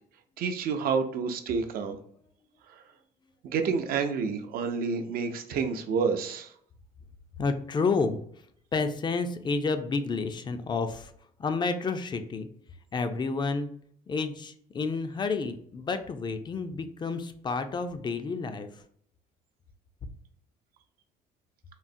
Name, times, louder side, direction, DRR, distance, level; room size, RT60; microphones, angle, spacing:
voice 1, 0.4-2.0 3.4-6.5, right 5 dB, 60° right, 6 dB, 0.5 m, -29 dB
voice 2, 7.4-8.5 8.7-11.1 11.4-12.5 12.9-13.7 14.1-18.8, left 4 dB, 25° left, 8 dB, 0.4 m, -30 dB
3.8 x 2.0 x 2.5 m, 0.63 s
cardioid pair, 110°, 17 cm